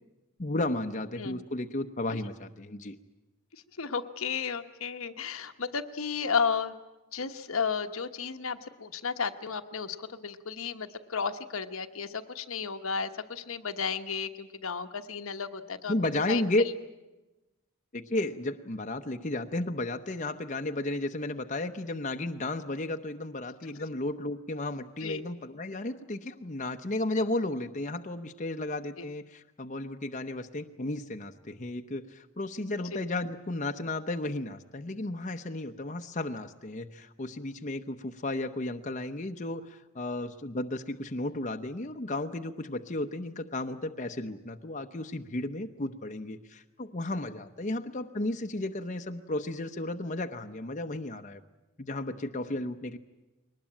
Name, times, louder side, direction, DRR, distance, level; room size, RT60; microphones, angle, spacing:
voice 1, 0.4-3.0 15.9-16.6 17.9-51.4 51.8-53.0, left 2 dB, 35° left, 5 dB, 0.9 m, -33 dB
voice 2, 3.5-6.7 7.1-15.9 16.3-16.4 25.0-25.2 29.0-29.1, left 6 dB, 80° left, 7 dB, 1.2 m, -33 dB
22.0 x 19.5 x 8.8 m, 1.0 s
head